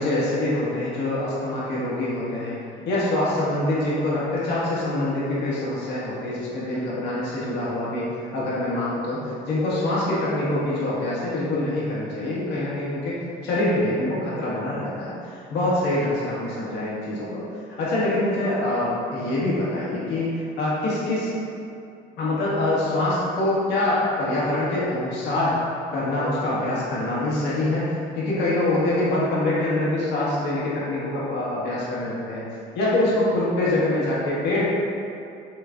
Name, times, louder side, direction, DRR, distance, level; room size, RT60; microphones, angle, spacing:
voice 1, 0.0-8.0 8.3-13.2 13.4-17.4 17.8-20.3 20.6-21.3 22.2-25.6 25.9-32.4 32.7-34.7, left 1 dB, 85° left, -7 dB, 1.5 m, -25 dB
6.3 x 3.3 x 2.4 m, 2.6 s
cardioid pair, 110°, 17 cm